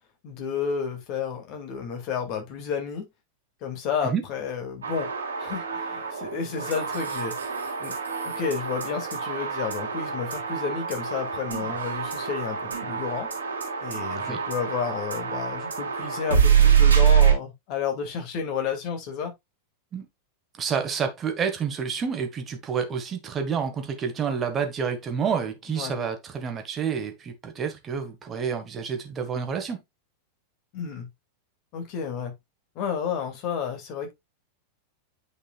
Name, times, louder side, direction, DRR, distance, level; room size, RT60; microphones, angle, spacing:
voice 1, 0.2-3.0 3.6-5.1 5.4-7.3 7.8-7.9 8.2-13.3 13.8-19.3 25.7-25.9 30.7-31.1 31.7-32.3 32.7-34.1, left 6 dB, 40° left, 2.4 m, -31 dB
sound 1, 4.8-17.3, right 8 dB, 70° right, 2.8 m, -25 dB
voice 2, 20.6-29.8, right 6 dB, 25° right, 1.7 m, -29 dB
9.5 x 5.3 x 2.4 m
figure-of-eight pair, 90°, 0 cm